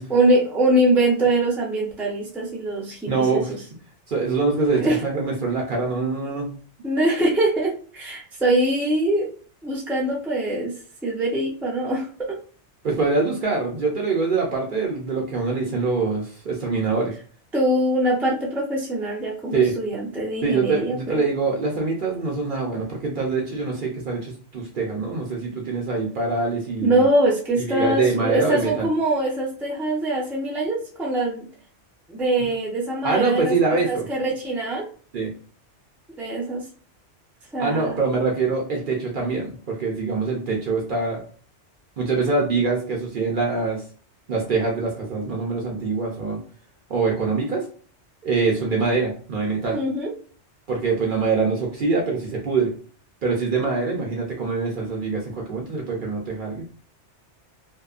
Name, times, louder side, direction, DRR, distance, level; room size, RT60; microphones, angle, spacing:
voice 1, 0.1-3.6 4.7-5.0 6.8-9.3 9.6-10.7 11.0-12.4 17.5-21.2 26.8-31.5 32.1-33.5 33.8-34.9 36.2-36.6 37.5-38.0 49.7-50.1, right 1 dB, ahead, -3 dB, 0.5 m, -23 dB
voice 2, 3.1-3.5 4.1-6.5 12.8-17.1 19.5-19.7 20.4-27.0 27.6-28.9 33.0-34.1 35.1-35.3 37.6-41.2 42.0-43.8 44.3-46.4 46.9-47.6 48.2-49.8 50.7-52.7 53.2-56.6, right 4 dB, 55° right, -1 dB, 0.7 m, -24 dB
2.8 x 2.1 x 2.4 m, 0.43 s
omnidirectional pair, 1.2 m